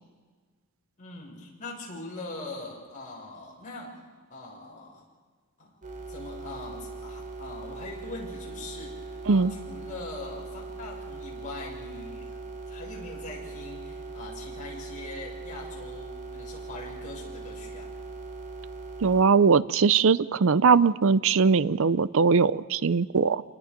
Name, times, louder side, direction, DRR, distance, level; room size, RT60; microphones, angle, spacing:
voice 1, 1.0-4.0 4.3-5.0 5.6-5.8 6.1-12.4 12.7-17.9, left 2 dB, 35° left, -3 dB, 6.3 m, -42 dB
sound 1, 5.8-19.2, right 3 dB, 35° right, 3.4 m, -40 dB
voice 2, 19.0-23.4, right 5 dB, 65° right, 17 dB, 0.5 m, -21 dB
27.5 x 20.0 x 5.3 m, 1.5 s
head